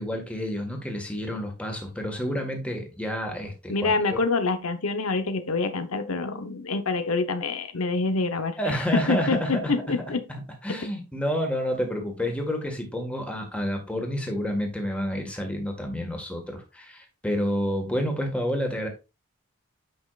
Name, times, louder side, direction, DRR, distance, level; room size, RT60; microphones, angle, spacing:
voice 1, 0.0-4.2 8.6-9.7 10.3-18.9, equal, 5° left, 1.6 m, -29 dB
voice 2, 3.7-8.6 8.9-10.2 10.7-10.8, left 3 dB, 85° left, 0.9 m, -26 dB
9.6 x 5.5 x 2.4 m
head